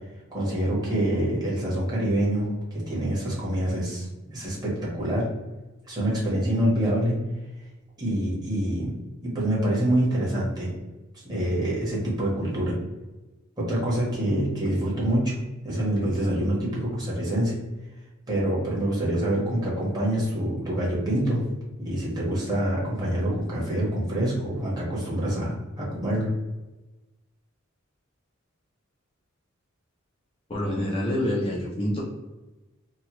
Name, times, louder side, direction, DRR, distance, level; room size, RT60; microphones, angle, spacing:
voice 1, 0.3-4.1 4.3-5.3 5.9-7.1 8.0-8.9 9.2-10.7 11.1-12.8 13.6-15.4 15.6-17.5 18.3-21.4 21.8-26.3, right 1 dB, 20° right, -6 dB, 1.2 m, -26 dB
voice 2, 30.5-32.0, left 1 dB, 25° left, -5 dB, 0.5 m, -26 dB
3.0 x 2.3 x 3.0 m, 1.1 s
head